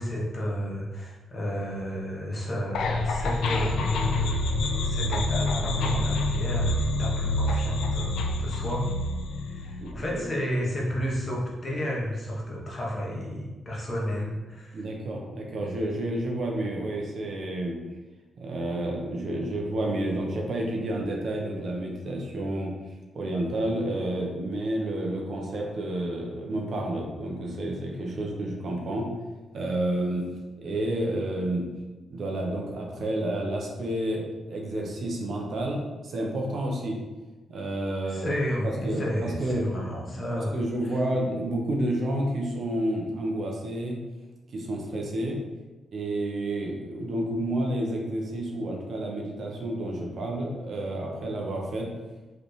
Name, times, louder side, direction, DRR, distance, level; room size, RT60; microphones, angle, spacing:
voice 1, 0.0-4.3 4.8-8.8 9.4-14.8 38.1-41.0, equal, 30° left, -3 dB, 1.1 m, -32 dB
sound 1, 2.7-9.9, left 2 dB, 85° left, 0.4 m, -27 dB
voice 2, 9.8-10.2 14.7-17.8 18.4-22.7 23.1-29.1 29.5-30.3 30.6-31.7 32.1-37.0 37.5-38.4 38.6-39.6 40.3-44.0 44.5-45.4 45.9-51.9, right 1 dB, 55° right, 0 dB, 0.9 m, -30 dB
4.9 x 3.4 x 3.2 m, 1.2 s
cardioid pair, 120°, 0 cm